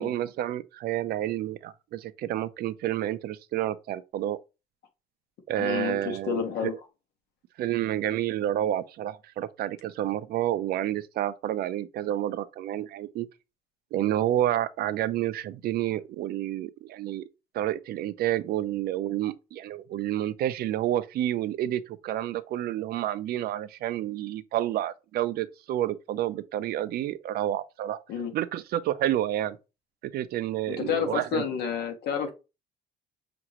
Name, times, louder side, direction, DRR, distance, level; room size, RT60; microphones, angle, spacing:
voice 1, 0.0-4.4 5.5-6.7 7.6-13.3 13.9-17.2 17.5-28.0 28.3-29.6 30.1-31.4, right 12 dB, 65° right, 0.5 m, -29 dB
voice 2, 5.6-6.7 28.1-28.3 30.7-32.3, left 7 dB, 75° left, 1.3 m, -30 dB
5.9 x 2.6 x 3.0 m
cardioid pair, 110°, 17 cm